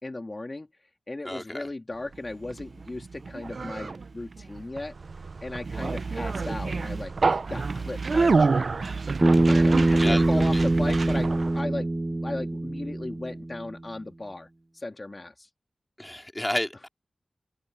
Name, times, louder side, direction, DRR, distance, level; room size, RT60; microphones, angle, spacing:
voice 1, 0.0-0.7 1.1-5.0 5.4-8.7 9.5-15.5, left 2 dB, 35° left, 2.6 m, -36 dB
voice 2, 1.3-1.7 10.0-10.2 10.5-10.6 16.0-16.9, left 1 dB, 15° left, 4.0 m, -31 dB
Conversation, 2.1-11.6, right 4 dB, 65° right, 0.6 m, -28 dB
Bass guitar, 9.2-13.5, right 2 dB, 30° right, 1.1 m, -23 dB
open air
cardioid pair, 50°, 0 cm